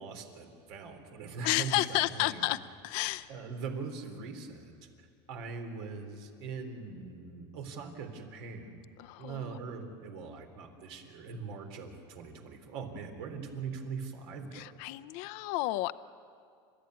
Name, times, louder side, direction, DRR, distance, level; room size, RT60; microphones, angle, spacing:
voice 1, 0.0-2.5 3.3-4.8 5.3-8.8 9.2-14.7, right 5 dB, 80° right, 4 dB, 3.6 m, -41 dB
voice 2, 1.4-2.6 2.8-3.3 9.0-9.5 14.5-15.9, left 18 dB, 65° left, 12 dB, 0.6 m, -31 dB
29.5 x 14.0 x 9.7 m, 2.3 s
supercardioid pair, 125°, 13 cm